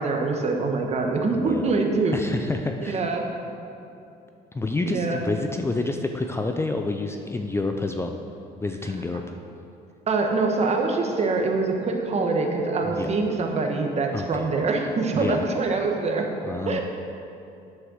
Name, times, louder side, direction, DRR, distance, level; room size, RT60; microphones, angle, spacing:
voice 1, 0.0-2.2 2.8-3.3 4.8-5.2 10.1-16.3 16.7-16.8, right 3 dB, 40° right, 2 dB, 1.2 m, -24 dB
voice 2, 1.3-1.7 2.1-3.0 4.5-8.1 8.6-9.2 12.8-13.1 14.1-14.5 15.1-15.5 16.4-16.8, left 3 dB, 15° left, 4 dB, 0.4 m, -28 dB
8.0 x 6.3 x 6.3 m, 2.7 s
cardioid pair, 110°, 17 cm